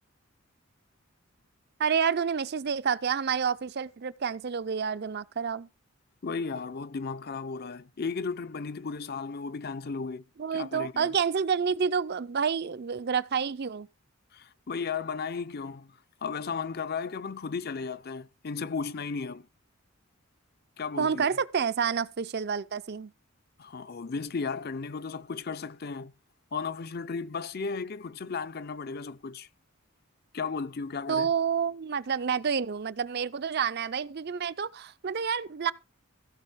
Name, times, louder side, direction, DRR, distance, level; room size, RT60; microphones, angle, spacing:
voice 1, 1.8-5.7 10.4-13.9 21.0-23.1 31.1-35.7, right 6 dB, 50° right, 0.5 m, -29 dB
voice 2, 6.2-10.2 10.5-11.1 14.3-19.5 20.8-21.3 23.6-26.1 26.5-29.5 30.3-31.3, left 5 dB, 45° left, 0.6 m, -35 dB
15.5 x 5.3 x 5.6 m
head